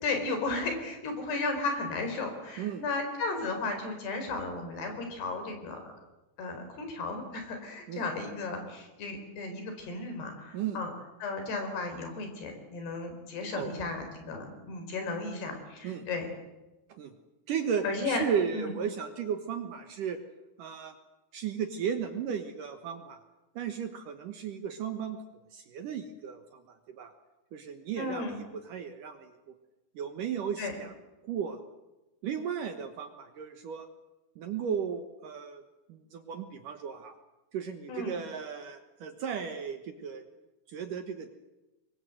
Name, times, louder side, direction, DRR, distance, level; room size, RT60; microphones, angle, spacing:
voice 1, 0.0-5.9 6.4-10.9 11.2-16.3 17.8-18.2 18.5-18.7 28.0-28.4 30.6-30.7 37.9-38.2, left 3 dB, 60° left, 5 dB, 6.2 m, -34 dB
voice 2, 17.5-20.2 20.6-20.9 21.3-23.2 23.6-25.2 25.5-26.6 27.0-27.1 27.5-29.3 30.0-30.9 31.2-31.6 32.2-33.9 34.4-35.6 35.9-37.2 37.5-40.2 40.7-41.3, right 7 dB, 65° right, 7 dB, 2.1 m, -35 dB
25.0 x 22.5 x 7.9 m, 1.1 s
omnidirectional pair, 5.4 m